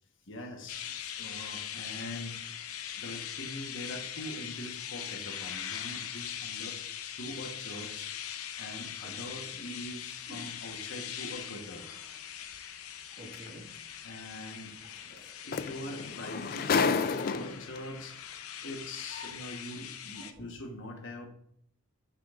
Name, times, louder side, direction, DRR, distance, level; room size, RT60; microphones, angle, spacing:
voice 1, 0.3-2.4 2.9-6.8 7.1-8.1 8.6-11.9 14.0-14.7 15.2-18.2 18.6-21.3, left 1 dB, 60° left, 1.2 m, -43 dB
sound 1, 0.7-20.3, left 9 dB, 80° left, 0.7 m, -41 dB
voice 2, 13.2-13.7 14.8-15.5 19.1-19.4 20.1-20.5, left 1 dB, 45° right, 1.8 m, -50 dB
sound 2, 13.3-13.5 15.2-15.3 15.5-17.8 18.7-18.8, left 5 dB, 40° left, 0.4 m, -30 dB
9.1 x 6.1 x 2.5 m
head